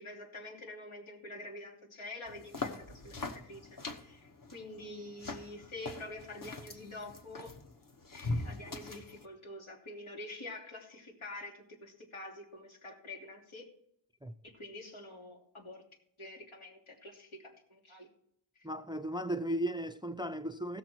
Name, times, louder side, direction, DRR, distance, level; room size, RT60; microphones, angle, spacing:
voice 1, 0.0-7.5 8.1-13.6 14.4-15.8 16.2-18.1, left 2 dB, 85° left, 3.1 m, -47 dB
sound 1, 2.3-9.2, left 2 dB, 40° left, 1.1 m, -42 dB
voice 2, 18.6-20.8, right 1 dB, 10° right, 0.4 m, -35 dB
17.0 x 6.6 x 4.5 m
wide cardioid pair, 90°, 48 cm